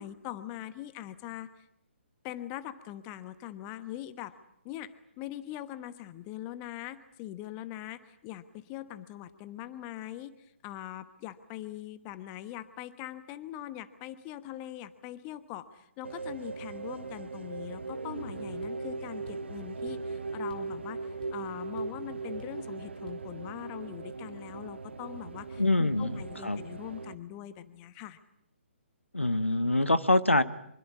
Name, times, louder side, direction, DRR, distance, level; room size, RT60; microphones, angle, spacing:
voice 1, 0.0-1.6 2.2-4.4 4.6-28.2, left 13 dB, 20° left, 13 dB, 1.2 m, -42 dB
sound 1, 16.0-27.2, right 4 dB, 60° right, 1.6 m, -39 dB
sound 2, 18.6-18.8 19.3-19.5 19.9-20.1 20.5-20.7 21.0-21.5 21.8-21.9 22.4-22.6 23.1-23.2, left 3 dB, 50° left, 4.8 m, -51 dB
voice 2, 25.6-26.6 29.1-30.4, left 2 dB, 80° left, 12 dB, 1.5 m, -25 dB
25.5 x 24.0 x 8.4 m, 0.73 s
figure-of-eight pair, 135°, 7 cm